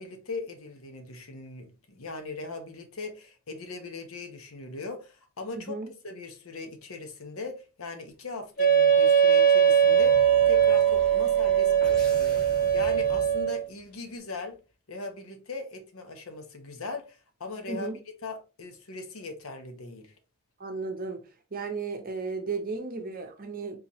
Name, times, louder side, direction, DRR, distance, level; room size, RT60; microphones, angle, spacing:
voice 1, 0.0-5.8 6.0-14.6 14.9-17.9 18.2-20.1, left 3 dB, 65° left, 0.8 m, -39 dB
Wind instrument woodwind instrument, 8.6-13.6, right 8 dB, 40° left, 1.1 m, -21 dB
sound 1, 8.9-13.9, equal, 5° left, 1.0 m, -44 dB
voice 2, 20.6-21.2 21.5-23.8, right 4 dB, 40° right, 0.7 m, -34 dB
3.9 x 2.9 x 2.7 m
head